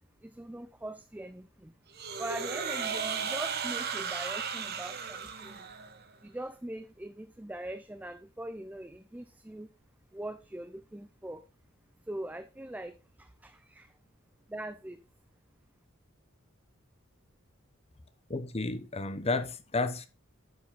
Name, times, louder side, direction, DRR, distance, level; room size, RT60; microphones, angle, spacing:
voice 1, 0.2-1.7 2.2-5.7 6.2-9.7 10.1-11.4 12.1-13.9 14.5-15.0, right 1 dB, 10° right, 0.4 m, -42 dB
sound 1, 1.9-6.0, right 6 dB, 50° right, 1.1 m, -35 dB
voice 2, 18.3-20.1, left 3 dB, 30° left, 0.9 m, -32 dB
11.5 x 5.0 x 3.8 m
head